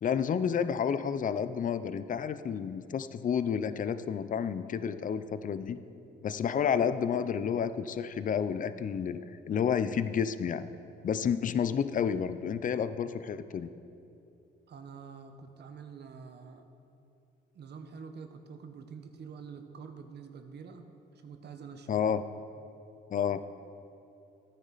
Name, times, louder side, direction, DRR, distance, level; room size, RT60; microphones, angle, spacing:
voice 1, 0.0-5.8 6.2-9.2 9.5-10.6 11.0-13.7 21.9-22.2 23.1-23.4, left 7 dB, 40° left, 13 dB, 0.5 m, -30 dB
voice 2, 14.7-16.7 17.5-20.9 21.2-21.9, right 6 dB, 55° right, 7 dB, 1.0 m, -46 dB
14.0 x 9.4 x 4.1 m, 2.7 s
cardioid pair, 90°, 20 cm